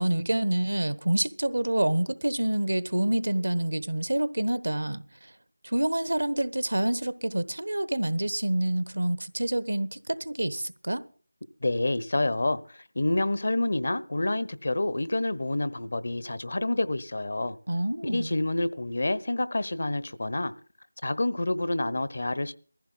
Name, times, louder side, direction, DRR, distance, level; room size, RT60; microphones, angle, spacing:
voice 1, 0.0-5.3 5.6-11.0 17.7-18.3, right 1 dB, 70° right, 1.1 m, -27 dB
voice 2, 11.6-12.6 12.9-17.6 18.0-20.5 21.0-22.5, left 2 dB, 55° left, 1.0 m, -28 dB
19.5 x 15.0 x 3.9 m
figure-of-eight pair, 165°, 0 cm